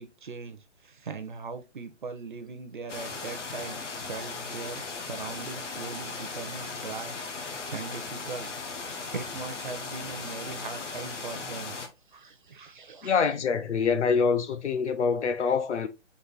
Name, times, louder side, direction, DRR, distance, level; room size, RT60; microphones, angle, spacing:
voice 1, 0.0-8.5 8.8-11.8 12.1-13.2, right 4 dB, 45° right, 0.5 m, -40 dB
sound 1, 2.9-11.9, left 4 dB, 90° left, 1.2 m, -37 dB
voice 2, 13.0-15.9, left 5 dB, 70° left, 0.8 m, -25 dB
4.0 x 2.6 x 3.8 m
hypercardioid pair, 165°, 35 cm